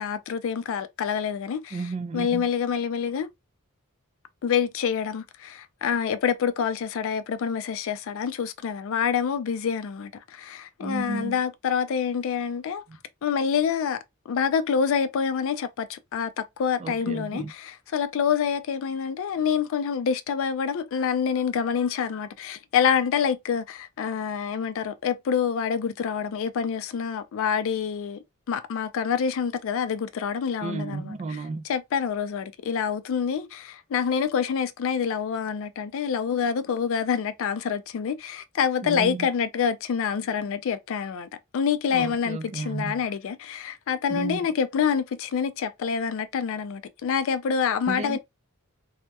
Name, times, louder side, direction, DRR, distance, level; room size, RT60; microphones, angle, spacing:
voice 1, 0.0-1.8 2.1-3.3 4.4-12.8 13.2-14.0 14.3-31.1 31.7-41.3 41.5-48.2, left 7 dB, 65° left, 0.3 m, -27 dB
voice 2, 1.7-2.5 10.8-11.4 12.9-13.0 16.8-17.5 30.6-31.7 38.8-39.3 41.9-43.1 44.1-44.5 47.9-48.2, right 3 dB, 30° right, 0.3 m, -33 dB
2.2 x 2.1 x 2.7 m
head